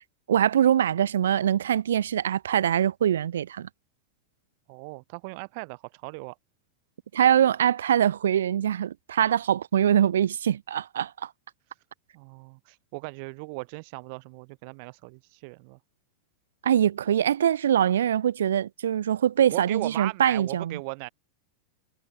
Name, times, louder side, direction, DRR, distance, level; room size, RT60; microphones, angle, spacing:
voice 1, 0.3-3.7 7.1-11.3 16.6-20.8, right 10 dB, 65° right, 4.5 m, -23 dB
voice 2, 4.7-6.4 11.7-11.8 12.1-15.8 19.5-21.1, right 33 dB, 45° right, 6.1 m, -38 dB
figure-of-eight pair, 90°, 0 cm